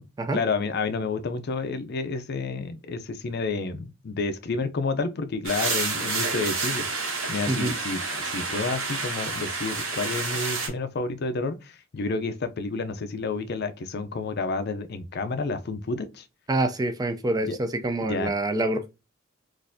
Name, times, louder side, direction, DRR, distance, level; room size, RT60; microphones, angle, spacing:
voice 1, 0.3-6.9 7.3-16.2 17.4-17.6 18.0-18.3, left 3 dB, 55° left, 0.5 m, -30 dB
sound 1, 5.4-10.7, right 3 dB, 80° right, 1.3 m, -29 dB
voice 2, 16.5-18.9, right 2 dB, 20° right, 0.4 m, -26 dB
4.1 x 2.5 x 2.6 m
head